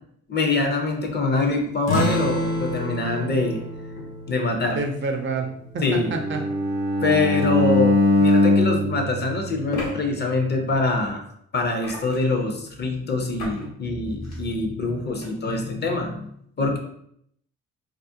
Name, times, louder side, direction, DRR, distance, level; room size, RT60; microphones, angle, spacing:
voice 1, 0.3-3.6 4.0-4.8 5.8-6.1 7.0-11.2 11.5-16.8, left 3 dB, 35° left, 3 dB, 0.5 m, -24 dB
sound 1, 1.9-6.9, left 1 dB, 90° left, 0.6 m, -30 dB
voice 2, 4.7-5.5 5.7-6.4, right 3 dB, 40° right, 3 dB, 0.4 m, -27 dB
Bowed string instrument, 6.0-10.1, left 2 dB, 85° right, 0.6 m, -21 dB
sound 2, 8.2-8.3 9.7-9.9 11.8-12.3 13.4-13.7 14.1-14.4 15.2-15.3, left 2 dB, 65° left, 1.0 m, -33 dB
2.4 x 2.0 x 2.6 m, 0.70 s
cardioid pair, 90°, 30 cm